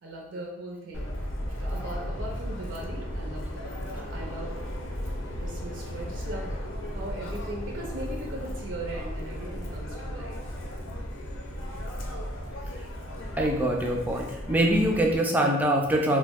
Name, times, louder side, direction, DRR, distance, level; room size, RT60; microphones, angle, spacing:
voice 1, 0.0-1.1 1.5-4.5 5.4-6.6 6.9-10.4, right 1 dB, 70° right, -1 dB, 0.5 m, -39 dB
Subway metro underground, 0.9-15.2, equal, 90° left, 0.6 m, -35 dB
voice 2, 13.4-16.2, right 1 dB, 10° right, 1 dB, 0.3 m, -24 dB
2.9 x 2.0 x 3.4 m, 0.87 s
head